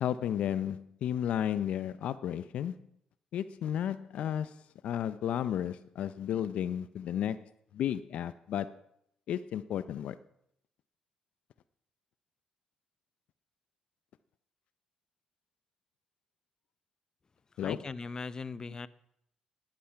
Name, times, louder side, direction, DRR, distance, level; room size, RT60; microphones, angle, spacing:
voice 1, 0.0-2.8 3.3-7.4 7.7-8.8 9.3-10.2 17.6-17.8, left 10 dB, 70° left, 0.5 m, -33 dB
voice 2, 17.6-18.9, left 4 dB, 35° left, 0.7 m, -39 dB
11.5 x 11.5 x 5.6 m
supercardioid pair, 65°, 2 cm